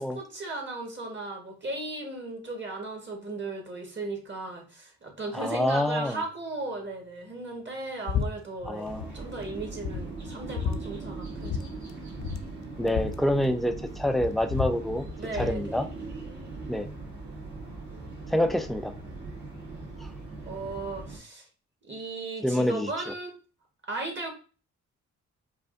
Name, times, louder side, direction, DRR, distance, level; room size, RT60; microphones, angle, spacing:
voice 1, 0.0-11.7 15.2-15.8 20.4-21.4 21.8-23.3 23.9-24.3, right 2 dB, 35° right, 1.4 m, -36 dB
voice 2, 5.3-6.2 8.7-9.1 12.8-15.0 15.3-15.9 16.7-16.9 18.3-18.9 20.0-20.1 22.4-23.1, left 1 dB, ahead, 0.4 m, -27 dB
sound 1, 8.1-8.3 8.6-9.1 9.5-9.6 9.8-10.8 11.4-11.6 11.9-12.0 12.2-13.9 14.2-15.6, left 7 dB, 60° left, 0.5 m, -32 dB
sound 2, 8.8-21.2, right 3 dB, 65° right, 1.8 m, -40 dB
4.8 x 2.5 x 2.5 m
cardioid pair, 75°, 31 cm